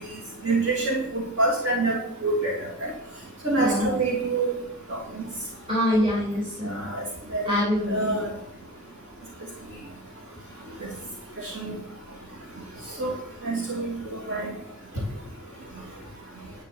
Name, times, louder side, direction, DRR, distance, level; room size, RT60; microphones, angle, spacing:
voice 1, 0.4-2.9 3.4-4.5 4.9-5.2 6.6-7.0 7.3-7.5 7.9-8.3 10.8-10.9 11.4-11.8 13.0-13.1 13.4-13.9 14.1-14.5, right 2 dB, 60° right, -3 dB, 2.8 m, -26 dB
voice 2, 3.6-4.0 5.7-6.9 7.5-8.2, left 1 dB, 25° right, -5 dB, 3.5 m, -25 dB
11.5 x 5.8 x 7.9 m, 0.75 s
head